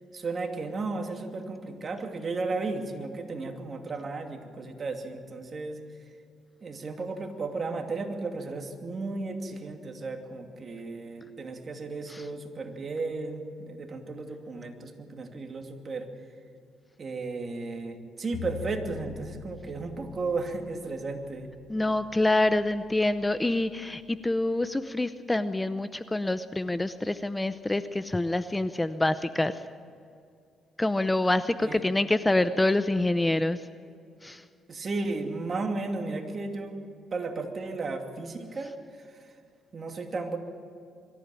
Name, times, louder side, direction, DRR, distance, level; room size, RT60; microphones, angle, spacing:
voice 1, 0.1-5.8 6.6-16.1 17.0-21.5 31.6-31.8 34.7-36.8 37.1-39.3 39.7-40.4, right 3 dB, 40° right, 4 dB, 2.6 m, -34 dB
Bowed string instrument, 18.3-24.5, left 8 dB, 70° left, 5.8 m, -46 dB
voice 2, 21.7-29.6 30.8-33.6 34.2-34.4, left 2 dB, 15° left, 12 dB, 0.7 m, -26 dB
22.5 x 14.5 x 9.1 m, 2.4 s
cardioid pair, 90°, 0 cm